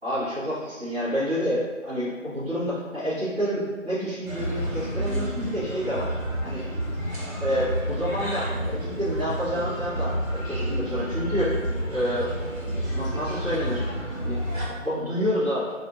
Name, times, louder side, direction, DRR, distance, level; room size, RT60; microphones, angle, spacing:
voice 1, 0.0-6.1 6.4-6.7 7.4-11.5 11.8-12.3 12.9-13.8 14.2-15.7, equal, 50° right, -16 dB, 1.2 m, -28 dB
sound 1, 4.3-14.7, equal, 80° right, 1.1 m, -30 dB
2.7 x 2.5 x 2.5 m, 1.4 s
figure-of-eight pair, 165°, 40 cm